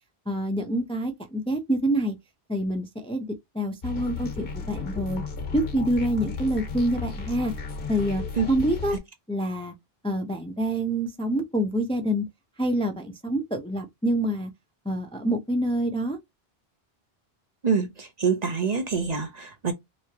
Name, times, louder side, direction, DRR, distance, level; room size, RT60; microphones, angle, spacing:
voice 1, 0.3-2.2 2.5-3.3 3.5-5.2 5.5-7.5 7.9-9.0 9.3-9.7 10.0-12.3 12.6-14.5 14.9-16.2, right 1 dB, 5° left, 0.5 m, -26 dB
sound 1, 3.8-9.0, left 5 dB, 65° left, 1.1 m, -34 dB
voice 2, 17.6-19.7, right 5 dB, 45° right, 0.8 m, -26 dB
3.4 x 3.1 x 2.8 m
omnidirectional pair, 1.0 m